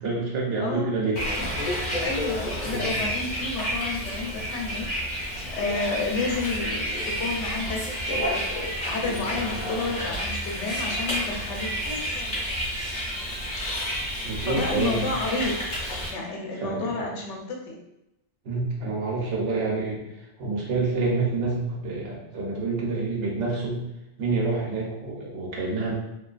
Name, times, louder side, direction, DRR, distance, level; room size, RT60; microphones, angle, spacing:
voice 1, 0.0-1.2 2.6-3.0 14.2-15.0 16.6-17.0 18.4-20.0 20.4-23.8 24.2-25.9, right 3 dB, 85° right, -2 dB, 1.0 m, -27 dB
voice 2, 0.6-1.0 2.0-12.3 14.5-15.8 16.1-17.8, left 3 dB, 85° left, 1 dB, 0.9 m, -31 dB
Bus, 1.2-16.1, equal, 45° left, 0.8 m, -30 dB
2.6 x 2.4 x 2.2 m, 0.89 s
omnidirectional pair, 1.2 m